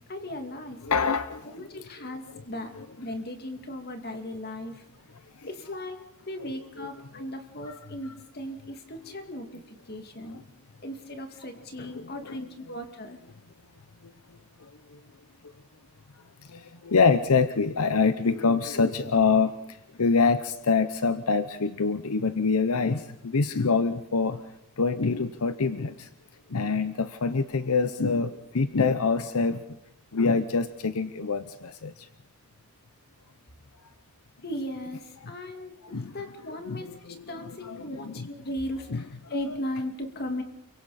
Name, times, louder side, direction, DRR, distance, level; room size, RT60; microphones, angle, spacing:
voice 1, 0.1-0.8 1.5-2.7 3.0-4.8 5.4-10.4 10.8-13.2 34.4-36.9 37.3-40.4, left 1 dB, 45° left, 5 dB, 2.3 m, -37 dB
voice 2, 0.8-1.8 2.8-2.9 5.4-5.5 6.8-6.9 7.2-7.3 7.6-7.7 10.2-10.4 11.9-12.8 14.0-14.1 14.6-15.0 16.4-24.4 24.8-26.1 26.5-29.6 30.1-32.1 35.2-35.3 35.8-36.2 36.5-38.3 38.9-39.0, left 4 dB, 85° left, 11 dB, 0.8 m, -26 dB
29.5 x 24.0 x 4.3 m, 0.82 s
head